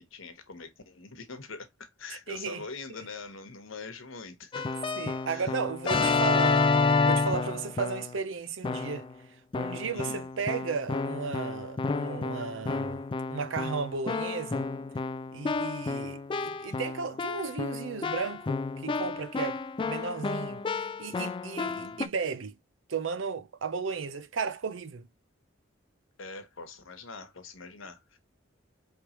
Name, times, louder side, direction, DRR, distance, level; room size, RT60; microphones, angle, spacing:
voice 1, 0.0-4.6 5.3-5.5 5.8-6.2 9.9-10.3 21.6-22.0 26.2-28.2, left 4 dB, 85° left, 1.1 m, -43 dB
voice 2, 2.3-2.6 5.0-6.7 7.1-9.1 9.5-13.0 13.3-14.6 15.3-22.6 22.9-25.1, right 5 dB, 70° right, 0.6 m, -34 dB
Keyboard (musical), 4.5-8.2 8.6-9.1 9.5-22.1, left 4 dB, 25° left, 0.3 m, -30 dB
4.6 x 3.3 x 2.9 m
head